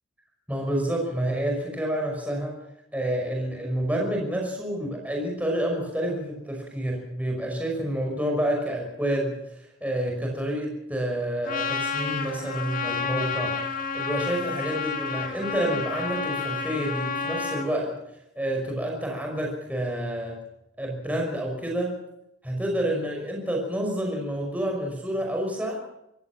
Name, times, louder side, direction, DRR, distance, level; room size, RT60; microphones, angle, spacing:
voice 1, 0.5-2.5 2.9-13.5 13.9-17.9 18.4-20.4 20.8-21.9 22.4-25.8, right 1 dB, 5° right, 0 dB, 5.6 m, -28 dB
Trumpet, 11.4-17.7, left 5 dB, 40° left, 2.2 m, -30 dB
25.5 x 16.0 x 7.4 m, 0.83 s
head